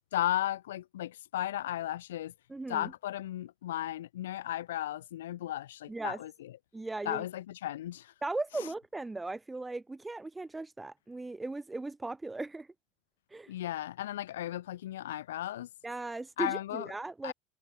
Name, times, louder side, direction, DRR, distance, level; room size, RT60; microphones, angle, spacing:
voice 1, 0.0-2.3 2.7-6.5 7.0-8.1 8.6-8.7 13.5-15.7 16.4-16.9 17.2-17.3, left 13 dB, 85° left, 0.9 m, -35 dB
voice 2, 2.5-2.9 5.9-6.2 6.7-7.3 8.2-12.7 13.3-13.5 15.8-17.3, right 2 dB, 15° right, 0.6 m, -37 dB
hypercardioid pair, 80°, 0 cm